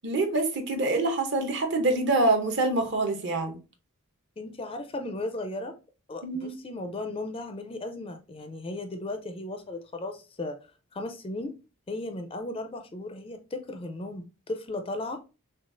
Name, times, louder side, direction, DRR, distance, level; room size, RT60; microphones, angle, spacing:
voice 1, 0.0-3.6 6.2-6.5, right 2 dB, 50° right, 0.8 m, -25 dB
voice 2, 4.4-5.7 6.1-10.6 10.9-11.5 11.9-15.2, left 2 dB, 25° left, 0.4 m, -36 dB
6.2 x 2.3 x 2.5 m
head